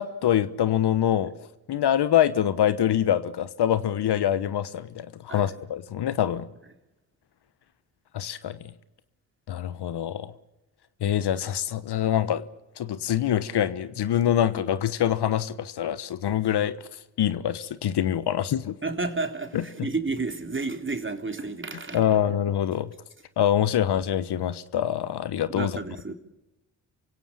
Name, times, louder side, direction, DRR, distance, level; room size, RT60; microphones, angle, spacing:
voice 1, 0.0-1.3 1.7-6.5 8.1-8.6 9.5-10.3 11.0-12.4 12.8-16.8 17.2-18.7 19.5-19.6 21.9-22.9 23.4-25.8, left 10 dB, 60° left, 1.2 m, -25 dB
voice 2, 18.8-22.0 25.5-26.1, right 3 dB, 25° right, 3.4 m, -31 dB
27.0 x 17.0 x 8.7 m
hypercardioid pair, 45°, 45 cm